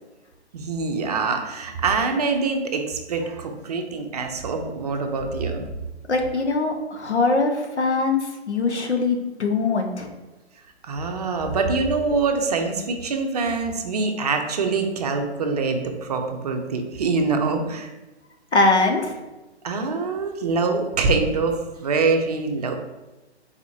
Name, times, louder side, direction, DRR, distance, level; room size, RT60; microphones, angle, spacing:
voice 1, 0.5-5.6 10.9-17.9 19.6-21.5 21.8-22.7, right 4 dB, 35° right, 4 dB, 0.5 m, -24 dB
voice 2, 6.1-10.1 18.5-19.1, left 3 dB, 85° left, 4 dB, 0.9 m, -22 dB
4.4 x 4.0 x 2.7 m, 1.1 s
figure-of-eight pair, 135°, 33 cm